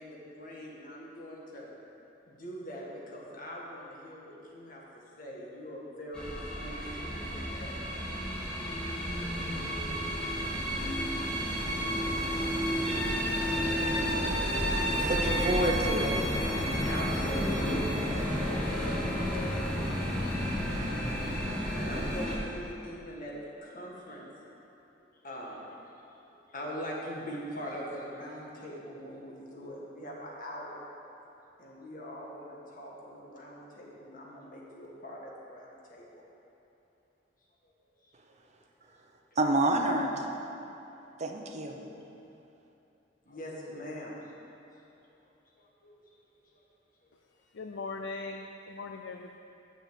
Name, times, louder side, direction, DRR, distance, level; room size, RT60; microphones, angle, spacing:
voice 1, 0.0-1.7 2.3-4.8 5.2-8.0 16.4-19.5 21.7-23.3 23.6-24.3 25.2-25.6 26.1-30.8 31.6-36.1 37.6-37.7 41.9-42.0 43.2-44.3 45.6-46.2 46.5-46.6, equal, 50° left, -3 dB, 1.7 m, -43 dB
sound 1, 6.1-22.4, equal, 5° left, 1.9 m, -31 dB
voice 2, 15.0-16.2 39.4-40.1 41.2-41.8, right 2 dB, 40° right, 2 dB, 0.8 m, -28 dB
voice 3, 47.3-49.4, left 3 dB, 70° left, 4 dB, 0.4 m, -40 dB
7.1 x 6.8 x 7.8 m, 2.9 s
head